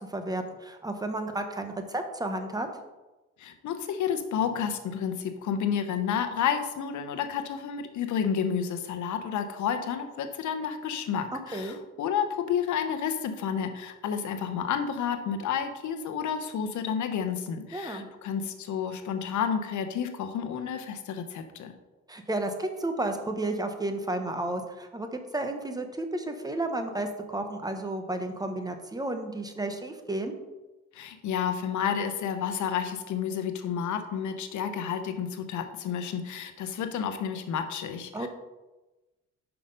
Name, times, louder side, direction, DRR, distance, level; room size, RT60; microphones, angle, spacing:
voice 1, 0.1-2.7 11.3-11.8 17.7-18.1 22.1-30.3 38.1-38.3, right 2 dB, 10° right, 6 dB, 1.0 m, -32 dB
voice 2, 3.4-21.7 30.9-38.3, left 7 dB, 75° left, 8 dB, 0.9 m, -30 dB
5.8 x 5.3 x 5.2 m, 1.1 s
cardioid pair, 90°, 30 cm